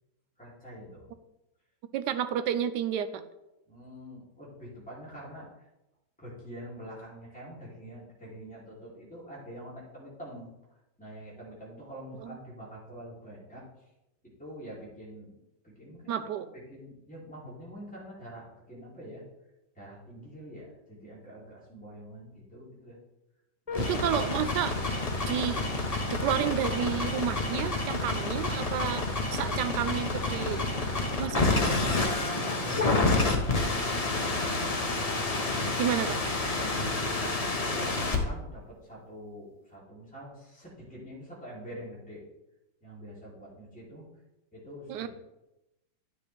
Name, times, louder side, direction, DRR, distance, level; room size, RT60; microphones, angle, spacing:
voice 1, 0.4-1.1 3.7-5.6 6.2-10.5 11.0-13.9 14.4-15.4 15.6-16.2 16.5-19.2 19.7-23.0 23.6-24.2 32.0-34.6 36.6-42.3 42.8-44.1 44.5-45.1, equal, 5° left, -7 dB, 3.2 m, -45 dB
voice 2, 1.9-3.2 12.2-12.4 16.1-16.5 23.8-24.8 25.3-25.7 26.1-30.6 31.2-31.6 35.8-36.2 44.9-45.1, right 9 dB, 75° right, 11 dB, 1.1 m, -31 dB
sound 1, 23.7-38.2, left 2 dB, 30° left, 0.6 m, -29 dB
10.0 x 7.3 x 3.4 m, 0.93 s
omnidirectional pair, 2.1 m